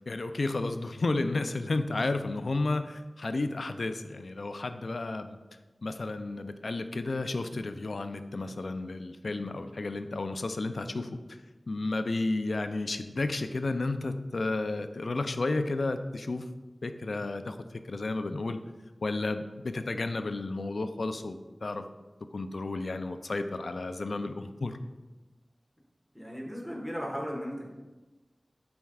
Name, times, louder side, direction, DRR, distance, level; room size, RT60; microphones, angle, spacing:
voice 1, 0.1-5.4 5.8-11.1 11.7-16.5 16.8-17.6 17.9-18.6 19.0-21.8 22.3-24.8, left 2 dB, 80° left, 9 dB, 0.3 m, -32 dB
voice 2, 26.1-27.7, equal, 5° right, -2 dB, 1.3 m, -36 dB
9.2 x 4.3 x 2.4 m, 1.2 s
wide cardioid pair, 60°, 0 cm